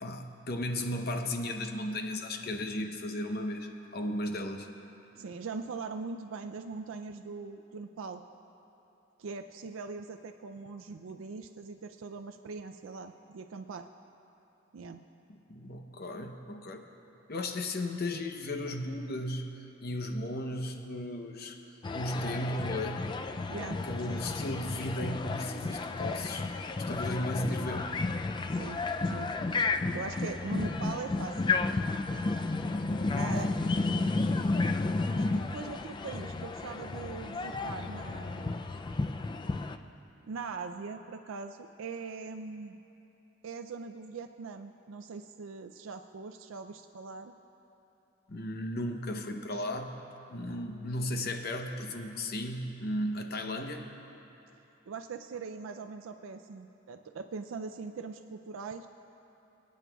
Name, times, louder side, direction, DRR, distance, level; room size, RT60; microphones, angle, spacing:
voice 1, 0.0-4.7 15.5-16.8 17.3-19.5 19.8-21.6 21.9-23.0 23.8-26.5 26.8-27.9 32.9-33.6 33.9-34.1 48.3-49.9 50.3-53.8, left 1 dB, 50° left, 5 dB, 0.8 m, -35 dB
voice 2, 5.2-8.2 9.2-13.9 14.7-15.0 23.5-23.8 24.1-24.2 28.5-29.3 29.9-31.6 33.2-33.5 35.2-38.6 40.2-42.8 43.4-47.3 53.5-53.6 54.9-58.9, right 4 dB, 85° right, 7 dB, 0.4 m, -41 dB
sound 1, 21.8-39.8, left 3 dB, 25° left, 0.3 m, -32 dB
27.5 x 9.3 x 2.3 m, 3.0 s
head